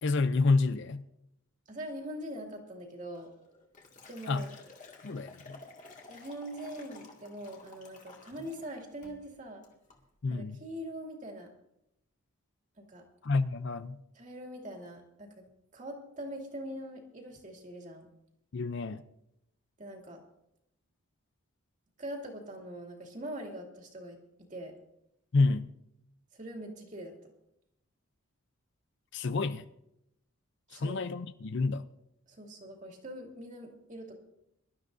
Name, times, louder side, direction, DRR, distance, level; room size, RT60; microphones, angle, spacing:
voice 1, 0.0-1.0 4.3-4.4 5.0-5.6 10.2-10.6 13.2-14.0 18.5-19.0 25.3-25.7 29.1-29.6 30.7-31.8, left 3 dB, 55° left, 0.5 m, -29 dB
voice 2, 1.7-3.3 4.1-4.5 6.1-9.6 10.3-11.5 12.9-13.0 14.1-15.4 15.7-18.1 19.8-20.2 22.0-24.2 24.5-24.7 26.3-27.3 30.7-31.0 32.3-34.1, right 1 dB, 35° right, 2.4 m, -42 dB
Liquid, 3.1-8.7 9.0-9.3 9.6-10.0, left 3 dB, 35° left, 2.1 m, -53 dB
24.0 x 12.5 x 2.6 m
head